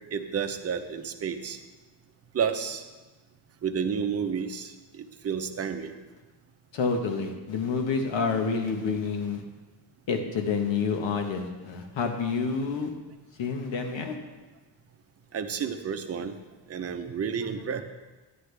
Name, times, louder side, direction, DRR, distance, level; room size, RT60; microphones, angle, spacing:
voice 1, 0.1-1.6 2.3-2.8 3.6-4.7 5.0-5.9 15.3-16.4 16.7-17.8, right 7 dB, 35° right, 5 dB, 0.7 m, -30 dB
voice 2, 6.7-9.4 10.1-12.9 13.4-14.2, left 5 dB, 75° left, 4 dB, 1.4 m, -28 dB
11.5 x 10.0 x 3.4 m, 1.2 s
cardioid pair, 145°, 45 cm